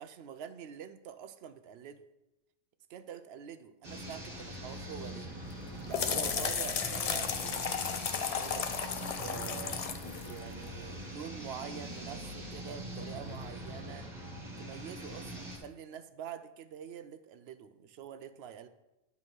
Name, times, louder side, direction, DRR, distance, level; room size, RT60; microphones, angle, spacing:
voice 1, 0.0-2.1 2.9-5.3 5.9-7.8 8.2-8.7 9.2-9.9 10.2-14.1 14.6-18.7, right 8 dB, 65° right, 11 dB, 0.7 m, -46 dB
sound 1, 3.8-15.6, equal, 35° right, 1.6 m, -43 dB
sound 2, 5.4-11.0, left 6 dB, 65° left, 0.3 m, -35 dB
10.5 x 3.6 x 6.1 m, 0.96 s
omnidirectional pair, 1.3 m